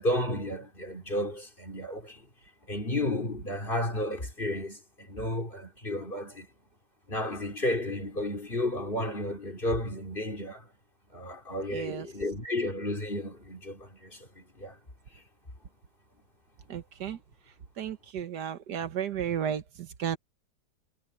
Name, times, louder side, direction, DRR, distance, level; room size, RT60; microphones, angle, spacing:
voice 1, 0.0-2.3 2.7-6.5 7.1-10.7 11.1-14.8 15.1-15.2, left 1 dB, 30° left, 3.7 m, -32 dB
voice 2, 11.7-12.1 16.7-17.2 17.8-20.2, right 9 dB, 75° right, 1.7 m, -33 dB
omnidirectional pair, 1.8 m